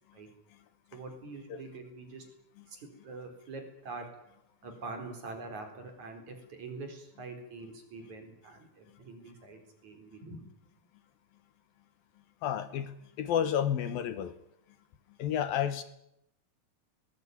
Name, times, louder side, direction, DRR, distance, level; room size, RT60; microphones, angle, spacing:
voice 1, 0.9-2.3 2.7-4.3 4.6-10.5, right 3 dB, 45° right, 5 dB, 5.5 m, -45 dB
voice 2, 12.4-14.3 15.2-15.8, left 9 dB, 70° left, 12 dB, 2.7 m, -30 dB
21.5 x 20.0 x 9.7 m, 0.80 s
omnidirectional pair, 4.7 m